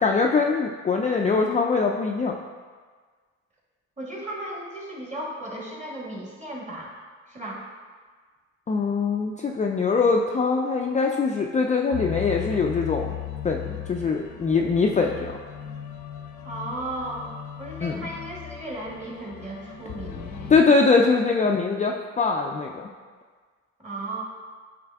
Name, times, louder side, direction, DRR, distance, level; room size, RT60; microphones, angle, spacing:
voice 1, 0.0-2.4 8.7-13.2 13.4-15.4 17.8-18.1 20.5-22.9, left 4 dB, 25° left, 1 dB, 0.4 m, -22 dB
voice 2, 4.0-6.9 7.3-7.6 16.4-17.3 17.6-20.5 23.8-24.2, right 1 dB, 25° right, -4 dB, 1.8 m, -35 dB
sound 1, 11.9-20.6, left 11 dB, 70° left, 0.6 m, -37 dB
8.7 x 3.3 x 3.5 m, 1.5 s
cardioid pair, 90°, 30 cm